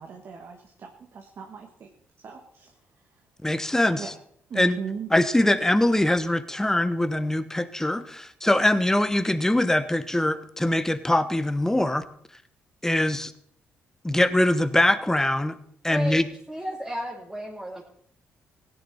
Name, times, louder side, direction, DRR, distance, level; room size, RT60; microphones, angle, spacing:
voice 1, 0.0-1.9 2.2-2.7 4.0-4.1 4.5-5.1, right 6 dB, 55° right, 3 dB, 1.7 m, -38 dB
voice 2, 3.4-4.1 4.6-4.8 5.1-12.1 12.8-13.3 14.0-15.5 15.8-16.2, left 1 dB, 10° left, 12 dB, 1.1 m, -23 dB
voice 3, 15.9-16.2 16.5-17.8, equal, 10° right, -3 dB, 2.7 m, -33 dB
16.5 x 10.0 x 4.3 m, 0.63 s
supercardioid pair, 55°, 5 cm